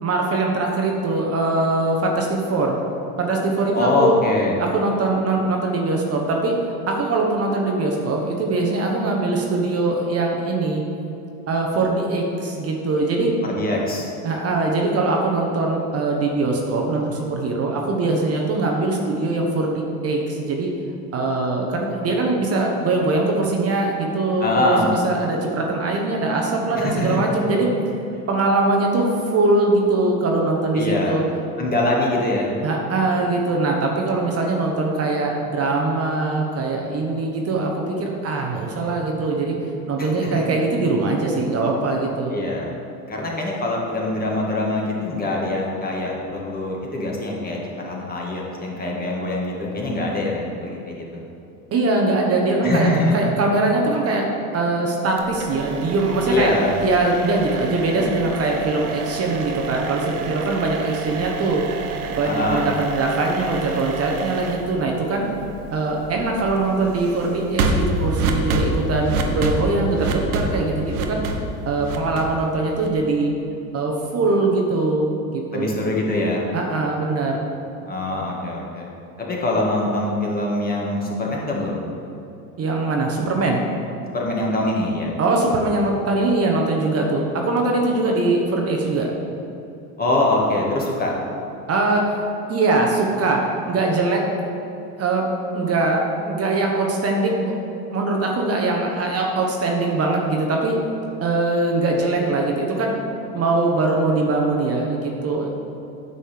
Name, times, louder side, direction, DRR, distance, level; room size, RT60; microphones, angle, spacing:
voice 1, 0.0-2.8 3.2-4.2 4.6-6.6 6.9-10.8 11.5-13.4 14.2-20.7 21.1-27.7 28.3-31.2 32.6-39.6 39.9-42.3 51.7-54.3 54.5-56.5 56.8-61.6 62.1-65.3 65.7-71.4 71.6-73.3 73.7-75.7 76.5-77.4 82.6-83.6 85.2-89.1 91.7-94.2 95.0-97.5 97.9-100.8 101.2-102.9 103.3-105.5, right 2 dB, 35° right, 0 dB, 1.2 m, -22 dB
voice 2, 3.7-4.6 13.4-14.1 24.4-24.9 26.7-27.2 28.1-28.3 30.7-31.2 31.6-32.5 40.0-40.5 42.3-42.7 43.1-47.6 47.8-51.2 52.6-53.2 56.3-56.7 62.2-62.6 75.5-76.5 77.9-78.9 79.2-81.8 84.1-85.1 90.0-91.1, left 2 dB, 20° left, -2 dB, 1.7 m, -23 dB
sound 1, 55.2-73.1, right 3 dB, 80° right, 1.1 m, -28 dB
9.3 x 4.1 x 6.6 m, 2.8 s
supercardioid pair, 105°, 44 cm